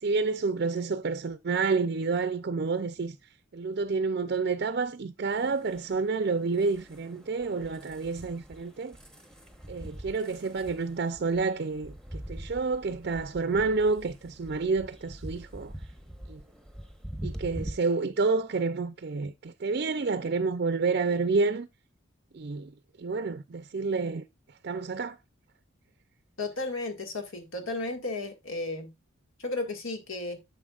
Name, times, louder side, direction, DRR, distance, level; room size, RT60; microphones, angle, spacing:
voice 1, 0.0-3.2 3.5-9.0 9.7-15.7 16.3-16.4 17.2-21.7 22.3-22.7 23.0-24.2 24.6-25.2, right 4 dB, 50° right, 0.4 m, -29 dB
sound 1, 5.3-17.7, equal, 5° left, 0.9 m, -44 dB
voice 2, 26.4-28.9 29.4-30.4, left 2 dB, 80° left, 1.8 m, -34 dB
9.8 x 7.7 x 2.4 m
head